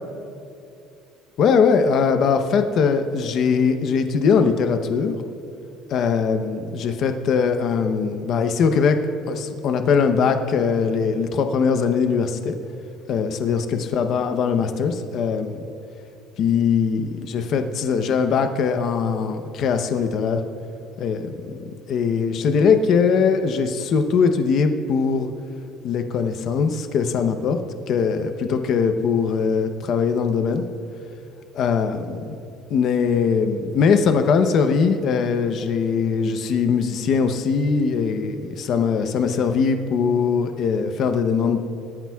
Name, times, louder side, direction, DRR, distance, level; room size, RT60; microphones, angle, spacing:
voice 1, 1.4-5.2 5.9-9.0 9.3-12.5 13.1-13.6 13.9-15.6 16.4-20.4 21.0-21.6 21.9-25.3 25.8-27.6 27.9-30.6 31.5-32.2 32.7-41.6, left 5 dB, 40° left, 7 dB, 0.8 m, -21 dB
24.5 x 13.5 x 2.4 m, 2.7 s
cardioid pair, 180°, 0 cm